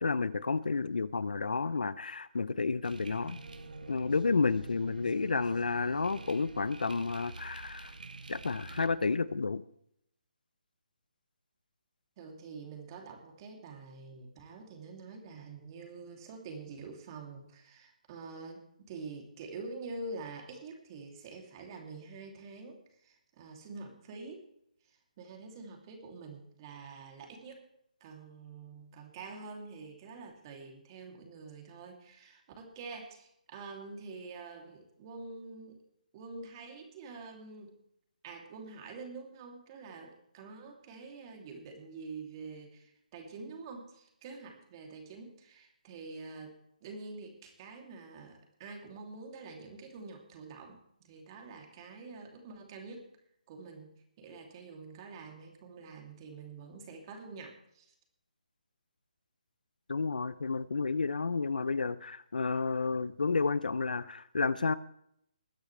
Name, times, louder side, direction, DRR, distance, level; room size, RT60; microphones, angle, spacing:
voice 1, 0.0-3.4 3.9-7.9 8.3-9.6 59.9-64.7, left 4 dB, 75° left, 17 dB, 0.7 m, -31 dB
sound 1, 2.8-8.9, right 3 dB, 75° right, 1.3 m, -46 dB
voice 2, 12.2-18.6 18.9-24.5 24.8-27.6 28.0-35.8 36.1-37.8 38.2-46.5 46.8-53.1 53.5-53.9 54.2-57.9, right 3 dB, 30° right, 2 dB, 2.9 m, -46 dB
20.5 x 10.0 x 3.4 m, 0.74 s
figure-of-eight pair, 150°, 5 cm